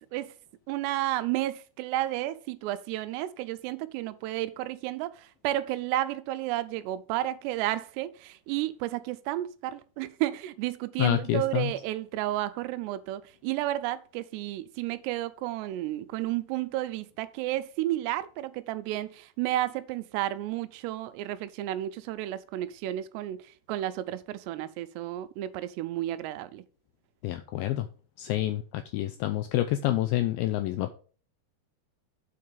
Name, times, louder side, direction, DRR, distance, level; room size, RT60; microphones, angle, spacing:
voice 1, 0.7-26.6, right 14 dB, 85° right, 2.7 m, -32 dB
voice 2, 11.0-11.7 27.2-27.9 28.2-30.9, left 14 dB, 90° left, 2.1 m, -28 dB
7.5 x 4.7 x 6.7 m
omnidirectional pair, 4.8 m